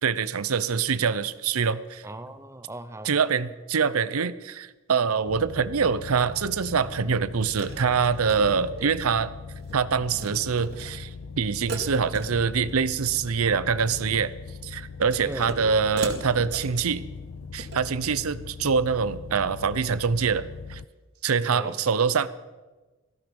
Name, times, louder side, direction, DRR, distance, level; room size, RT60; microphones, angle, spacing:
voice 1, 0.0-2.0 3.0-9.3 9.7-14.3 14.6-17.0 17.5-20.8 21.2-22.3, right 6 dB, 90° right, 15 dB, 0.7 m, -25 dB
voice 2, 2.0-3.1 8.7-8.9 15.3-15.6 21.3-21.8, right 1 dB, 15° right, 10 dB, 0.7 m, -38 dB
sound 1, 5.2-20.8, left 4 dB, 85° left, 0.5 m, -40 dB
sound 2, 6.7-6.8 7.6-9.1 9.4-9.7 10.0-10.3 10.6-11.0 11.7-12.7 13.0-13.3 13.7-14.2 15.1-15.7 16.0-16.8 17.4-17.8, right 3 dB, 50° right, 2.5 m, -39 dB
18.0 x 15.0 x 5.4 m, 1.2 s
head